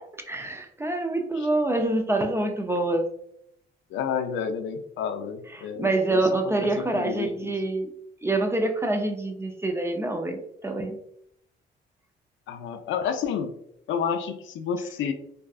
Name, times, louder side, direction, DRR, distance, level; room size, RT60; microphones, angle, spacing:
voice 1, 0.3-3.1 5.5-7.9 8.2-11.0, right 2 dB, 15° right, 4 dB, 0.4 m, -26 dB
voice 2, 3.9-6.2 6.6-7.5 12.5-13.6 13.9-15.1, left 7 dB, 75° left, 6 dB, 0.4 m, -30 dB
2.6 x 2.3 x 2.3 m, 0.73 s
cardioid pair, 90°, 20 cm